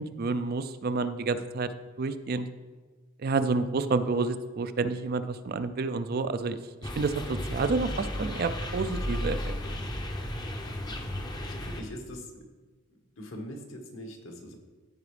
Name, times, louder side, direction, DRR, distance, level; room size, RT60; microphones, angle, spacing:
voice 1, 0.0-1.7 2.0-2.5 3.2-6.6 7.0-9.4, right 4 dB, 45° right, 11 dB, 0.4 m, -29 dB
sound 1, 6.8-11.8, equal, 20° left, 0.6 m, -34 dB
voice 2, 11.5-12.3 13.2-14.6, equal, 70° left, 2 dB, 1.4 m, -42 dB
14.5 x 4.8 x 3.3 m, 1.4 s
head